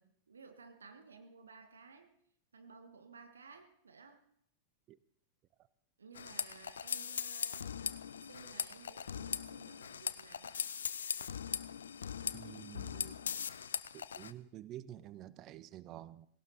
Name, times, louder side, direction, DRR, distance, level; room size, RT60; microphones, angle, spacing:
voice 1, 0.0-2.2 2.5-4.2 6.0-7.8 8.2-10.6, right 5 dB, 70° right, 8 dB, 1.9 m, -56 dB
sound 1, 6.2-14.3, left 7 dB, 70° left, 0.7 m, -40 dB
voice 2, 12.3-13.2 13.9-16.3, right 13 dB, 35° right, 17 dB, 0.8 m, -49 dB
18.5 x 18.0 x 4.3 m, 0.67 s
figure-of-eight pair, 90°, 0 cm